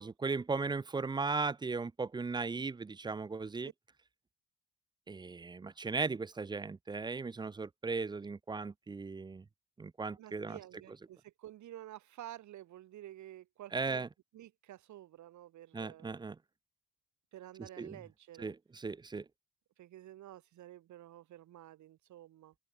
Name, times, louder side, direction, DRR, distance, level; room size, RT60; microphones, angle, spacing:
voice 1, 0.0-3.7 5.1-9.5 9.8-10.6 13.7-14.1 15.7-16.4 17.6-18.0 18.4-19.3, right 4 dB, 15° right, 0.4 m, -37 dB
voice 2, 10.2-14.0 14.3-16.2 17.3-18.5 19.8-22.5, right 13 dB, 75° right, 1.4 m, -51 dB
open air
cardioid pair, 90°, 30 cm